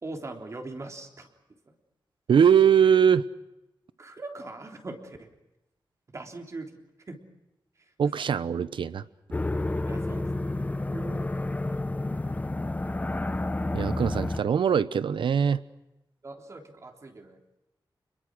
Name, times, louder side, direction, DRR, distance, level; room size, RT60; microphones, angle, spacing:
voice 1, 0.0-1.3 1.7-1.8 4.0-5.3 6.1-6.8 7.1-7.2 7.8-8.3 9.9-10.5 10.9-11.3 16.2-17.4, right 2 dB, 35° right, 4 dB, 3.5 m, -41 dB
voice 2, 2.3-3.2 8.0-9.0 13.7-15.6, right 7 dB, 85° right, 15 dB, 1.0 m, -21 dB
sound 1, 9.3-14.4, left 2 dB, 20° left, 0.9 m, -30 dB
29.0 x 22.0 x 6.3 m, 0.94 s
wide cardioid pair, 135°, 8 cm